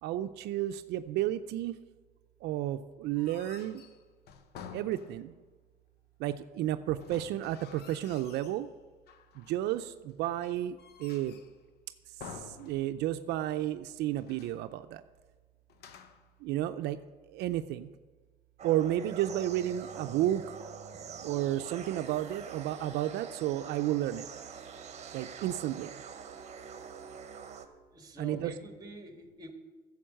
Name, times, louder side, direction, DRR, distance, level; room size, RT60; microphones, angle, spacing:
voice 1, 0.0-1.8 2.4-3.8 4.7-5.3 6.2-8.7 9.4-11.4 12.3-15.0 16.4-17.0 17.3-17.9 18.6-20.4 21.2-24.3 25.1-25.9 28.2-28.5, right 13 dB, 85° right, 10 dB, 0.5 m, -32 dB
sound 1, 3.1-5.5 7.0-8.6 9.1-9.7 10.2-11.6 12.2-13.3 13.6-13.7 14.1-14.7 15.7-16.3, left 7 dB, 75° left, 0.9 m, -50 dB
sound 2, 18.6-27.7, right 6 dB, 40° right, 1.1 m, -45 dB
voice 2, 27.9-29.5, right 1 dB, 20° right, 5 dB, 1.6 m, -46 dB
10.0 x 7.2 x 7.6 m, 1.3 s
cardioid pair, 110°, 17 cm